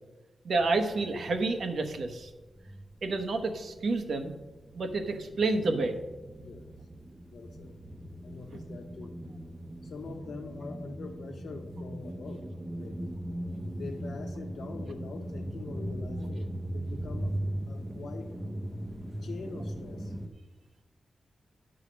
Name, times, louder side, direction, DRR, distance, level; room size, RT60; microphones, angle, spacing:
voice 1, 0.4-2.3 3.0-4.3 4.7-6.0, right 3 dB, 65° right, 6 dB, 1.0 m, -29 dB
sound 1, 0.6-2.2 2.5-20.3, right 1 dB, 10° right, 0.7 m, -39 dB
voice 2, 6.4-6.8 7.3-7.8 8.2-9.2 9.8-12.5 12.7-13.1 13.7-17.4 17.7-18.3 19.2-20.2, left 4 dB, 65° left, 5 dB, 1.1 m, -43 dB
11.0 x 4.9 x 6.2 m, 1.2 s
wide cardioid pair, 160°, 0 cm